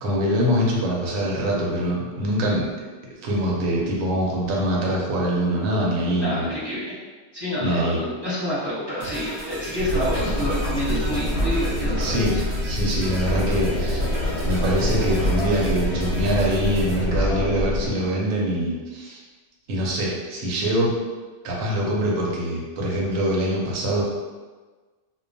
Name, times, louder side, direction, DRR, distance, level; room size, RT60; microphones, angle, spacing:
voice 1, 0.0-2.6 3.2-6.5 7.6-8.0 12.0-14.1 14.4-19.2 19.7-20.9 21.4-24.0, equal, 80° right, -3 dB, 1.0 m, -24 dB
voice 2, 6.2-6.9 7.3-12.4, equal, 20° right, -12 dB, 0.9 m, -28 dB
sound 1, 9.0-17.0, right 1 dB, 55° right, 0.7 m, -36 dB
sound 2, 9.8-17.9, left 1 dB, 85° left, 1.0 m, -25 dB
2.3 x 2.2 x 2.6 m, 1.3 s
omnidirectional pair, 1.4 m